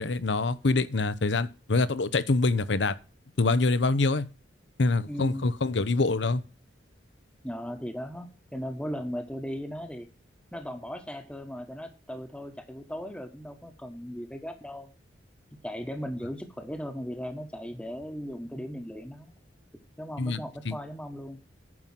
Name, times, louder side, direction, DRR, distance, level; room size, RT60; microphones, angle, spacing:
voice 1, 0.0-2.9 3.4-4.2 4.8-6.4 20.2-20.4 20.7-20.8, left 3 dB, 70° left, 0.8 m, -25 dB
voice 2, 5.1-5.5 7.4-10.1 10.5-14.9 15.6-19.3 20.0-21.4, equal, 5° left, 1.1 m, -37 dB
9.6 x 5.6 x 7.5 m
head